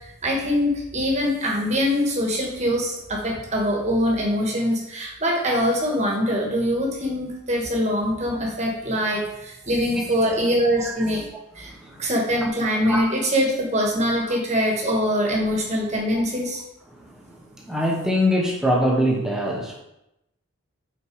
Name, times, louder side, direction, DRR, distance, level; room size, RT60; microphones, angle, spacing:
voice 1, 0.2-11.2 11.5-11.7 12.0-16.6, equal, 30° right, -1 dB, 1.3 m, -23 dB
voice 2, 11.6-12.1 12.8-13.1 17.0-17.1 17.6-19.8, equal, ahead, -1 dB, 0.9 m, -23 dB
5.9 x 4.5 x 4.6 m, 0.88 s
head